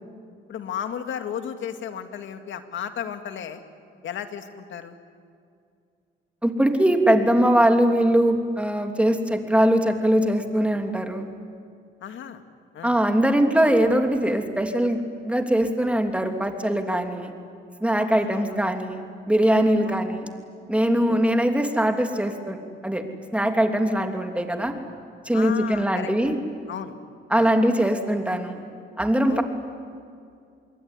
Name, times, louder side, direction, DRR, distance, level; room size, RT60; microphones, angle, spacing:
voice 1, 0.5-3.6 4.0-5.0 12.0-12.4 12.7-12.9 18.1-18.6 19.8-20.0 21.1-21.2 25.3-26.1 26.7-27.0 27.4-27.5 29.3-29.4, left 8 dB, 70° left, 7 dB, 2.2 m, -34 dB
voice 2, 6.4-11.3 12.8-17.3 17.8-20.3 20.7-23.0 23.3-24.8 25.2-26.4 27.3-28.6 29.0-29.4, right 1 dB, 5° right, 5 dB, 3.0 m, -21 dB
27.0 x 21.5 x 9.8 m, 2.4 s
cardioid pair, 90°, 20 cm